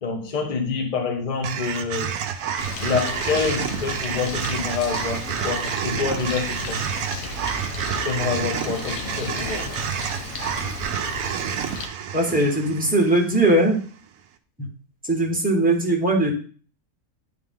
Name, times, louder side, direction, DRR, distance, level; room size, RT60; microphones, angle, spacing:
voice 1, 0.0-2.2 2.8-6.8 8.0-9.7 11.4-11.5, left 5 dB, 30° left, 4 dB, 1.0 m, -27 dB
sound 1, 1.4-13.7, right 8 dB, 70° right, 1.0 m, -29 dB
Bird, 2.6-11.9, left 4 dB, 65° left, 1.2 m, -34 dB
voice 2, 12.1-13.8 14.6-14.7 15.0-16.3, right 1 dB, 5° right, -1 dB, 1.5 m, -20 dB
10.0 x 3.6 x 3.7 m, 0.41 s
omnidirectional pair, 1.7 m